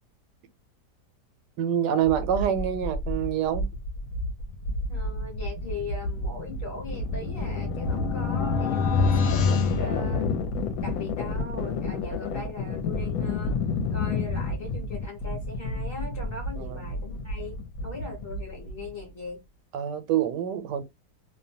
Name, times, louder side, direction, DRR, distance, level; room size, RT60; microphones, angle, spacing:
voice 1, 1.6-3.6 16.6-16.8 19.7-20.8, right 9 dB, 90° right, 1.2 m, -26 dB
sound 1, 2.0-19.0, left 3 dB, 70° left, 1.0 m, -30 dB
voice 2, 4.9-10.3 10.8-13.6 13.9-19.4, left 3 dB, 45° left, 0.8 m, -39 dB
sound 2, 6.9-10.7, left 5 dB, 85° left, 0.5 m, -27 dB
2.7 x 2.1 x 2.6 m
omnidirectional pair, 1.8 m